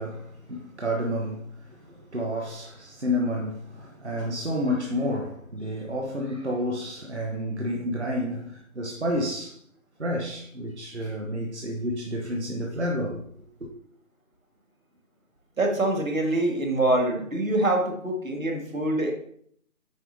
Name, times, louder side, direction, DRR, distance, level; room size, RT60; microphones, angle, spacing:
voice 1, 0.0-9.6 10.0-13.2 13.6-13.7, equal, 50° right, 1.0 m, -30 dB
voice 2, 15.6-19.1, right 1 dB, 70° right, 1.7 m, -25 dB
9.1 x 3.4 x 3.9 m
figure-of-eight pair, 175°, 43 cm